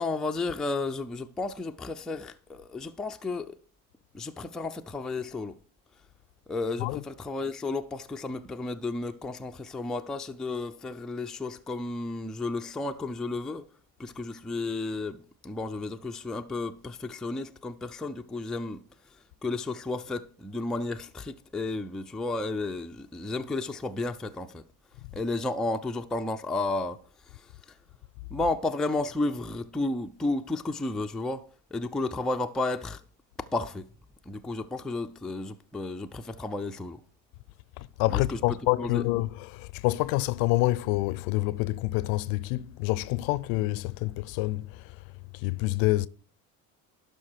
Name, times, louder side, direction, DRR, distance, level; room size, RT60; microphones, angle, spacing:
voice 1, 0.0-3.6 4.1-5.6 6.5-13.7 14.0-18.8 19.4-24.6 25.1-27.0 27.3-27.7 28.3-33.0 33.4-33.9 34.3-37.0 38.1-39.1, left 2 dB, ahead, 0.3 m, -32 dB
voice 2, 38.0-44.7 45.4-46.1, left 18 dB, 70° left, 0.6 m, -27 dB
11.5 x 5.4 x 4.5 m
hypercardioid pair, 70°, 49 cm